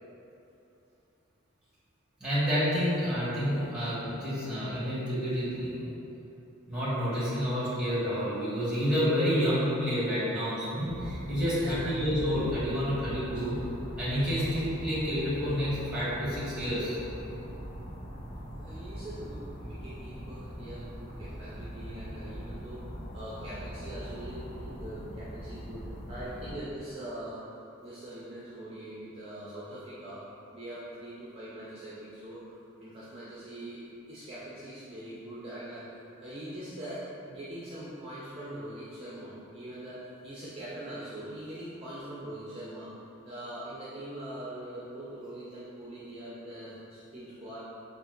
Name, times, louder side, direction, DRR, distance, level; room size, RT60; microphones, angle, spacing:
voice 1, 2.2-5.9 6.7-13.5 14.0-17.0, equal, 5° right, -12 dB, 1.4 m, -29 dB
sound 1, 10.9-26.5, equal, 40° left, 1.4 m, -41 dB
voice 2, 11.5-11.9 18.6-30.2 30.5-32.6 32.8-42.9 43.2-47.6, right 1 dB, 25° right, -9 dB, 0.5 m, -42 dB
4.1 x 2.5 x 3.7 m, 2.8 s
head